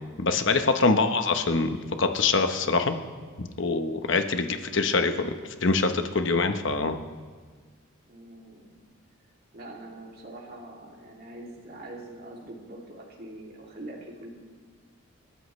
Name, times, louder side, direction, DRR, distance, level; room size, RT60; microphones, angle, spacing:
voice 1, 0.2-1.7 2.0-3.0 3.4-5.3 5.6-7.0, left 3 dB, 60° left, 7 dB, 0.9 m, -24 dB
voice 2, 4.3-4.7 8.1-8.7 9.5-14.3, right 1 dB, 45° right, -3 dB, 2.7 m, -44 dB
28.5 x 13.5 x 3.2 m, 1.5 s
head